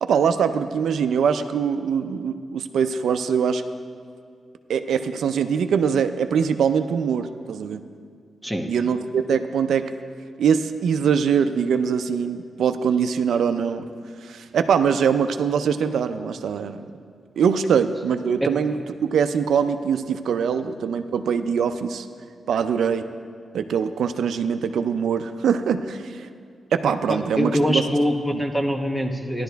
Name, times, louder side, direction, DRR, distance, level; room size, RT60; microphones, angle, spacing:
voice 1, 0.0-3.6 4.7-7.8 8.7-9.9 10.4-13.8 14.2-16.9 17.4-22.1 22.5-23.0 23.5-26.3 26.7-27.8 28.3-28.4, right 7 dB, 85° right, 9 dB, 0.5 m, -23 dB
voice 2, 27.1-29.4, equal, ahead, 4 dB, 1.0 m, -23 dB
15.5 x 11.5 x 3.4 m, 2.2 s
cardioid pair, 90°, 0 cm